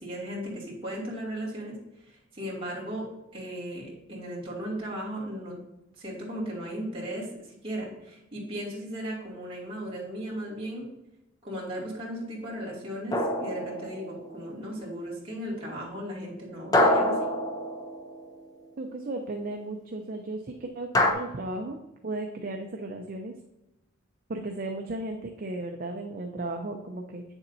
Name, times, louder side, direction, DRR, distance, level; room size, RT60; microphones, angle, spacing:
voice 1, 0.0-1.8 2.1-3.1 3.3-5.6 6.0-10.9 11.4-17.3, equal, 25° right, -5 dB, 2.5 m, -36 dB
sound 1, 13.1-14.3 16.7-18.4 20.9-21.1, left 1 dB, 20° left, 0.7 m, -25 dB
voice 2, 18.8-21.8 22.0-23.4 24.3-27.2, right 2 dB, 45° right, 3 dB, 0.6 m, -35 dB
8.8 x 7.0 x 2.7 m, 0.93 s
head